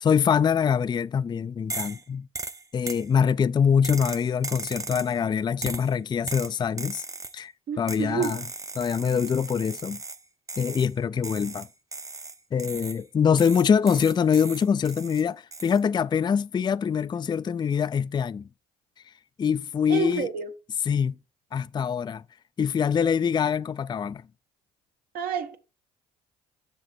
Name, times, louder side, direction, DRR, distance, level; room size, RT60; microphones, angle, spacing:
voice 1, 0.0-2.3 2.7-7.0 7.3-8.4 8.8-10.0 10.6-11.7 12.5-18.5 19.4-20.3 20.9-21.2 21.5-22.2 22.6-24.2, left 7 dB, 25° left, 0.4 m, -24 dB
sound 1, 1.7-2.0 2.3-3.1 3.8-5.2 5.6-5.9 6.3-7.4 7.9-10.2 10.5-10.9 11.2-13.0 13.4-15.2 15.5-15.8, right 3 dB, 20° right, 0.7 m, -37 dB
voice 2, 7.7-8.4 19.9-20.5 25.1-25.6, right 7 dB, 65° right, 1.5 m, -29 dB
7.6 x 6.0 x 4.4 m
supercardioid pair, 70°, 16 cm